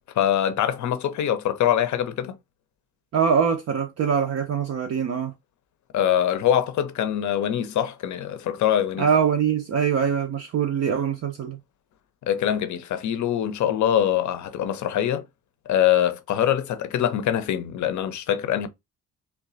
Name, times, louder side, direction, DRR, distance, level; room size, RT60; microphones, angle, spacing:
voice 1, 0.1-2.4 5.9-9.1 12.2-15.2 15.7-18.7, left 10 dB, 45° left, 0.6 m, -23 dB
voice 2, 3.1-5.3 9.0-11.6, right 7 dB, 40° right, 0.5 m, -23 dB
3.0 x 2.3 x 2.4 m
hypercardioid pair, 40°, 40 cm